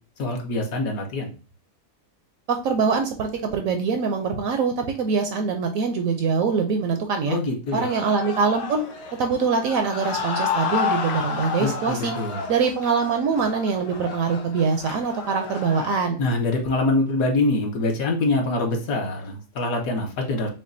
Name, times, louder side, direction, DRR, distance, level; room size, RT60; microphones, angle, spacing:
voice 1, 0.2-1.3 7.3-7.9 11.6-12.5 16.2-20.5, left 2 dB, 65° left, 2 dB, 1.2 m, -24 dB
voice 2, 2.5-7.4 7.7-8.9 9.2-12.1 12.5-16.2, right 5 dB, 70° right, 5 dB, 0.8 m, -23 dB
sound 1, 7.7-16.0, left 6 dB, 90° left, 1.4 m, -31 dB
5.9 x 2.3 x 2.5 m, 0.33 s
omnidirectional pair, 1.7 m